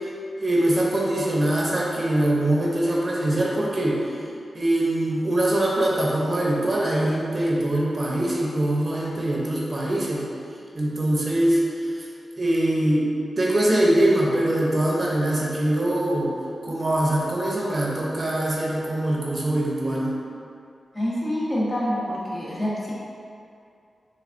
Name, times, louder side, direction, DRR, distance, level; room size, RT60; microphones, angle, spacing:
voice 1, 0.4-4.1 4.5-10.3 10.8-11.9 12.4-16.3 16.6-20.2, right 1 dB, 35° right, -5 dB, 0.6 m, -23 dB
voice 2, 20.9-22.9, equal, 25° left, -8 dB, 0.8 m, -26 dB
3.3 x 3.2 x 2.5 m, 2.5 s
wide cardioid pair, 120°, 0 cm